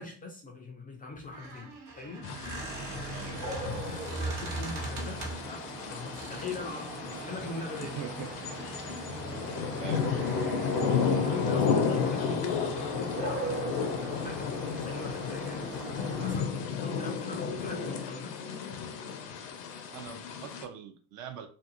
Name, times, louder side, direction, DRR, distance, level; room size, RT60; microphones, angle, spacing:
voice 1, 0.0-2.3 4.1-8.0 11.2-18.4, left 4 dB, 20° left, 0.4 m, -41 dB
Squeak, 1.2-5.5 6.2-6.7, right 3 dB, 65° right, 1.1 m, -39 dB
sound 1, 2.2-20.6, left 6 dB, 60° left, 0.6 m, -33 dB
sound 2, 2.5-16.4, right 2 dB, 85° right, 0.8 m, -39 dB
voice 2, 2.7-3.6 7.8-8.3 9.8-10.1 19.9-21.5, right 7 dB, 40° right, 0.5 m, -43 dB
2.5 x 2.5 x 2.4 m
figure-of-eight pair, 55°, 46 cm